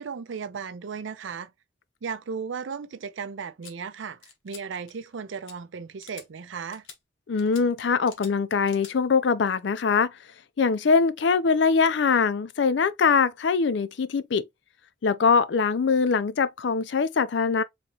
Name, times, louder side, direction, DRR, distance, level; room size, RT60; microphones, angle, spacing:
voice 1, 0.0-1.5 2.0-6.9, right 6 dB, 75° right, 0.5 m, -35 dB
sound 1, 3.6-3.7 4.2-4.6 4.9-5.2 5.4-5.5 6.0-6.3 6.7-7.0 7.4-7.6 8.1-8.3 8.7-8.9, left 7 dB, 90° left, 1.0 m, -46 dB
voice 2, 7.3-10.1 10.6-14.5 15.0-17.6, left 5 dB, 65° left, 0.4 m, -22 dB
3.6 x 2.9 x 2.9 m
head